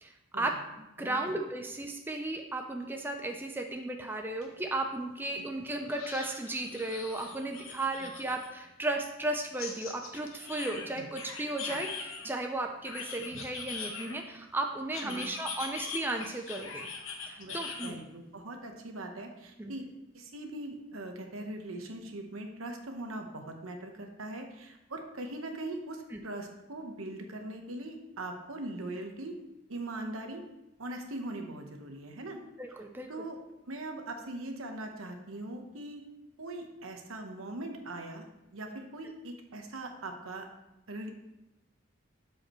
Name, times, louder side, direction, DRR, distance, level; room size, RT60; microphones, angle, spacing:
voice 1, 0.0-16.9 17.3-18.0 19.6-19.8 26.1-26.2 32.6-33.1, right 2 dB, 10° right, 3 dB, 0.4 m, -35 dB
sound 1, 4.4-4.5 4.9-5.0 5.9-8.5 9.6-12.3 12.8-14.4 14.9-17.9, left 5 dB, 80° left, 1.0 m, -41 dB
voice 2, 17.4-19.9 20.1-29.3 29.7-30.4 30.8-32.4 33.1-33.4 33.7-36.0 36.4-38.2 38.5-40.5 40.9-41.1, right 2 dB, 85° right, 4 dB, 1.1 m, -41 dB
12.5 x 4.8 x 3.1 m, 0.95 s
head